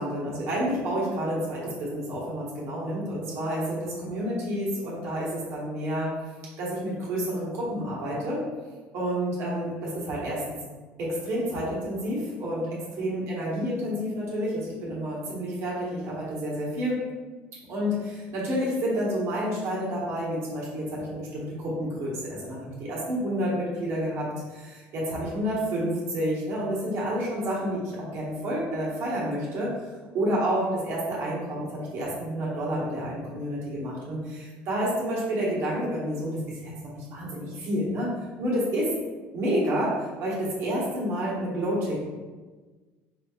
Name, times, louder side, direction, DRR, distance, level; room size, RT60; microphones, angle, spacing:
voice 1, 0.0-6.1 6.6-8.4 8.9-10.6 11.0-17.0 17.7-29.7 30.1-38.1 38.4-38.9 39.3-42.0, equal, 60° right, -5 dB, 1.3 m, -29 dB
4.8 x 2.7 x 2.4 m, 1.3 s
cardioid pair, 110°, 5 cm